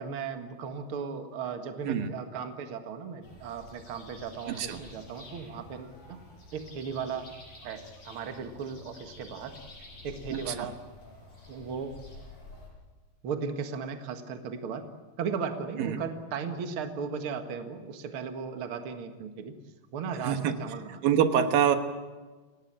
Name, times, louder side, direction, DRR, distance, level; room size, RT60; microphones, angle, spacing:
voice 1, 0.0-6.2 6.5-7.3 7.6-9.6 10.0-10.8 11.5-11.9 13.2-14.9 15.2-19.5 19.9-21.0, right 6 dB, 45° right, 6 dB, 2.2 m, -36 dB
sound 1, 3.2-12.7, left 2 dB, 85° left, 8.6 m, -50 dB
voice 2, 4.5-4.8 10.3-10.7 15.8-16.1 20.2-20.6 21.0-21.8, right 9 dB, 85° right, 7 dB, 3.1 m, -26 dB
28.0 x 17.5 x 8.8 m, 1.3 s
omnidirectional pair, 4.0 m